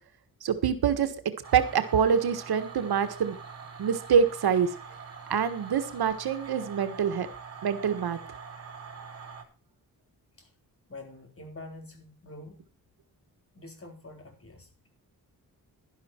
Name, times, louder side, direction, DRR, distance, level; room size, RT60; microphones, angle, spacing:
voice 1, 0.4-1.1 1.5-3.3 3.8-4.7 5.3-7.3 7.6-8.2, right 7 dB, 85° right, 9 dB, 1.5 m, -25 dB
sound 1, 1.4-9.4, right 5 dB, 40° right, 2.8 m, -44 dB
voice 2, 10.9-12.6 13.5-14.9, left 2 dB, 35° left, 3 dB, 4.1 m, -46 dB
11.5 x 11.5 x 4.4 m, 0.35 s
wide cardioid pair, 105°, 37 cm